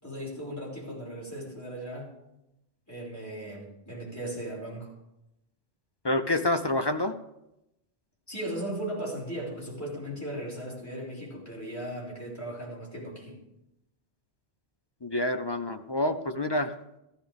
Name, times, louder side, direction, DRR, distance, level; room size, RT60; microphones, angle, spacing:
voice 1, 0.0-2.1 2.9-4.9 8.3-13.3, right 1 dB, 15° left, -5 dB, 5.2 m, -37 dB
voice 2, 6.0-7.2 15.0-16.7, left 1 dB, 40° left, 7 dB, 0.4 m, -27 dB
15.5 x 14.0 x 3.5 m, 0.89 s
omnidirectional pair, 1.1 m